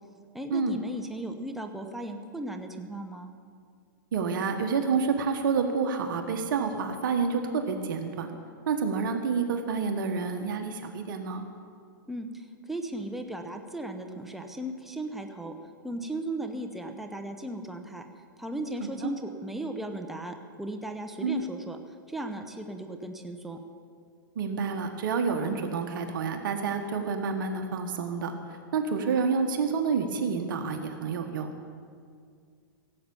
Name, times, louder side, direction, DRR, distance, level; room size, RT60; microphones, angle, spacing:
voice 1, 0.3-3.3 12.1-15.5 15.8-18.0 18.4-21.8 22.1-23.6, right 1 dB, ahead, 4 dB, 0.9 m, -36 dB
voice 2, 4.1-8.3 8.7-11.5 19.0-19.1 21.2-21.4 24.3-31.5, right 5 dB, 65° right, 6 dB, 1.5 m, -29 dB
17.0 x 7.8 x 7.1 m, 2.2 s
hypercardioid pair, 130°, 12 cm